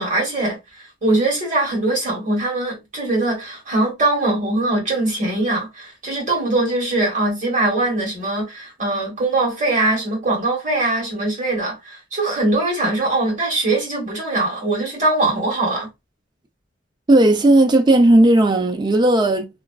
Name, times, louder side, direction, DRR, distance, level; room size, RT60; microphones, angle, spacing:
voice 1, 0.0-15.9, right 2 dB, 40° right, 1.2 m, -21 dB
voice 2, 17.1-19.6, right 1 dB, 20° right, 0.4 m, -15 dB
2.4 x 2.2 x 2.2 m
head